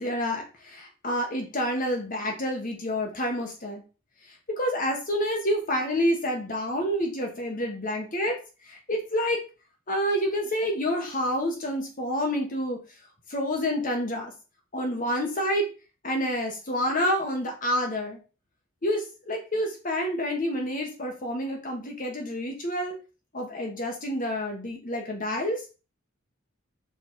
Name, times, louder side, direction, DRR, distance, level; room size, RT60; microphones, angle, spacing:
voice 1, 0.0-3.8 4.5-8.4 8.7-9.4 9.9-12.8 13.3-14.3 14.7-15.7 16.0-18.2 18.8-22.9 23.3-25.7, equal, 40° left, 2 dB, 1.4 m, -28 dB
5.4 x 4.2 x 4.6 m, 0.33 s
head